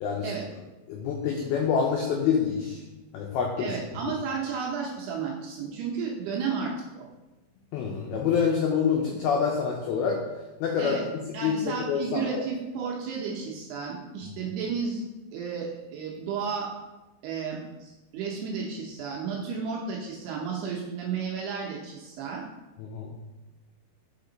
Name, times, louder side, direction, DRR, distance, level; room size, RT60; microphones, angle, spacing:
voice 1, 0.9-2.8 3.1-3.7 7.7-10.2 10.6-12.4 22.8-23.1, left 6 dB, 90° left, 0 dB, 2.1 m, -27 dB
voice 2, 3.6-7.1 10.8-11.0 11.3-15.0 15.3-16.7 17.2-22.4, right 6 dB, 75° right, -2 dB, 2.5 m, -33 dB
5.9 x 5.2 x 3.9 m, 1.1 s
omnidirectional pair, 5.2 m